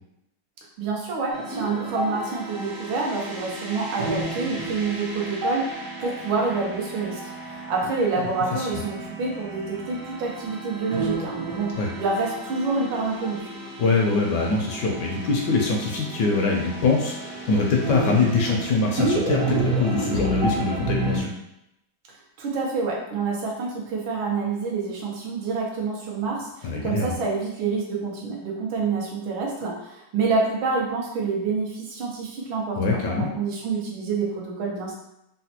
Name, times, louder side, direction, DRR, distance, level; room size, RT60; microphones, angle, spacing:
voice 1, 0.8-13.5 22.4-34.9, right 4 dB, 85° right, -2 dB, 1.6 m, -27 dB
sound 1, 1.3-21.2, right 2 dB, 65° right, 0.8 m, -31 dB
voice 2, 13.8-21.3 26.6-27.1 32.8-33.3, left 3 dB, 75° left, 0 dB, 1.1 m, -23 dB
4.0 x 2.1 x 2.8 m, 0.85 s
omnidirectional pair, 2.1 m